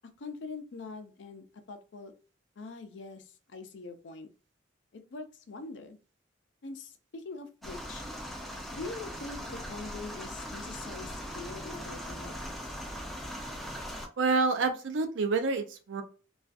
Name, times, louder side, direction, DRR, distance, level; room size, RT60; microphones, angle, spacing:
voice 1, 0.2-2.1 2.6-4.3 4.9-6.0 6.6-8.1 8.7-12.3, left 3 dB, 75° left, 8 dB, 0.5 m, -43 dB
sound 1, 7.6-14.1, equal, ahead, 0.4 m, -40 dB
voice 2, 14.2-16.0, right 4 dB, 85° right, 7 dB, 0.5 m, -28 dB
2.4 x 2.4 x 2.3 m, 0.36 s
head